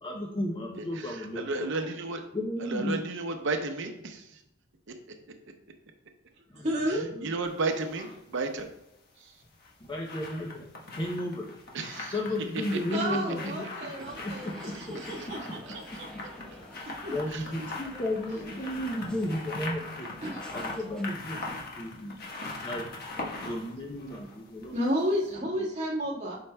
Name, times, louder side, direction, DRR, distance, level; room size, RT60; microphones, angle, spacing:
voice 1, 0.0-1.9 2.3-3.0 6.5-7.3 9.8-11.5 12.1-13.7 14.2-14.8 17.1-20.1 20.5-21.5 21.8-22.2 22.6-24.7 25.4-25.6, left 1 dB, 25° left, 0 dB, 0.6 m, -34 dB
voice 2, 0.9-2.2 2.6-4.4 4.9-5.0 6.9-8.7 9.2-9.3 11.7-12.2 12.7-12.8 13.4-13.5 14.0-14.1 14.9-15.3 15.7-16.1 17.3-17.4, right 3 dB, 65° right, 5 dB, 0.7 m, -34 dB
voice 3, 6.5-7.0 12.9-14.5 14.7-16.1 16.8-17.1 20.2-20.4 24.7-26.4, equal, 35° right, -6 dB, 1.5 m, -31 dB
sound 1, 7.4-8.2 9.4-24.9 25.3-25.4, left 3 dB, 50° left, 1.2 m, -41 dB
sound 2, 14.0-21.0, equal, 5° left, 0.9 m, -49 dB
7.6 x 5.7 x 2.2 m, 0.84 s
head